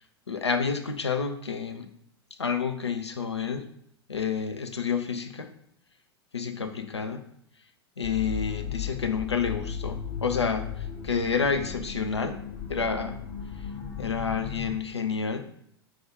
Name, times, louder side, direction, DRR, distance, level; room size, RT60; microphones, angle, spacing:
voice 1, 0.3-1.9 2.4-3.7 4.1-5.5 6.3-7.3 8.0-12.4 12.7-13.2 14.0-15.5, left 5 dB, 85° left, 8 dB, 0.4 m, -29 dB
sound 1, 8.0-14.8, left 8 dB, 50° left, 0.9 m, -36 dB
4.4 x 2.3 x 4.5 m, 0.69 s
figure-of-eight pair, 90°, 14 cm